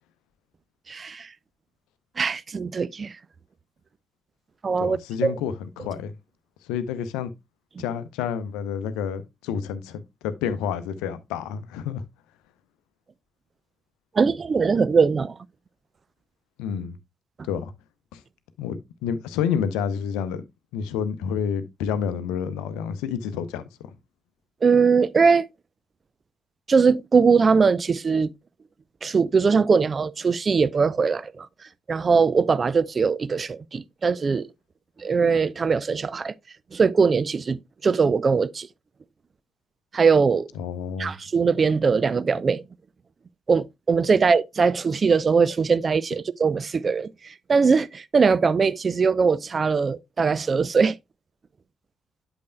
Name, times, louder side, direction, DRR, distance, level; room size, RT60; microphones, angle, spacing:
voice 1, 0.9-1.3 2.2-3.1 4.6-5.3 7.8-7.9 14.2-15.3 24.6-25.5 26.7-28.3 29.0-31.5 31.9-34.5 35.0-36.3 36.7-38.7 39.9-40.5 41.0-42.6 43.5-51.0, right 5 dB, 35° right, 0.4 m, -21 dB
voice 2, 4.8-6.2 6.6-7.3 7.8-12.1 16.6-17.0 17.5-17.7 18.1-18.2 18.6-20.4 20.7-23.9 40.6-41.1, left 7 dB, 65° left, 0.6 m, -29 dB
8.3 x 8.0 x 2.2 m
figure-of-eight pair, 40°, 0 cm